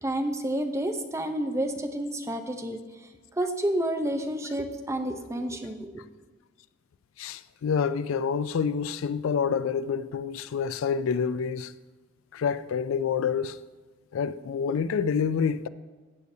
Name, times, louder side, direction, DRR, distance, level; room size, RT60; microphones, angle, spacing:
voice 1, 0.0-2.8 3.4-6.0, right 1 dB, 15° right, 0.6 m, -30 dB
voice 2, 7.2-11.7 12.3-13.6 14.1-15.7, left 6 dB, 85° left, 0.4 m, -27 dB
14.5 x 8.3 x 2.7 m
head